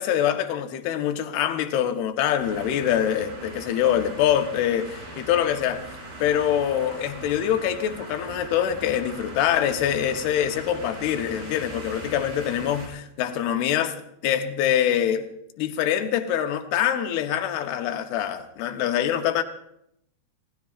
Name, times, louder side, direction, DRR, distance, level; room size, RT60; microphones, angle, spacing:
voice 1, 0.0-5.8 6.2-15.3 15.6-19.4, left 10 dB, 75° left, 2.8 m, -24 dB
sound 1, 2.4-12.9, right 1 dB, 55° right, 7.7 m, -40 dB
29.5 x 18.0 x 2.5 m
omnidirectional pair, 4.9 m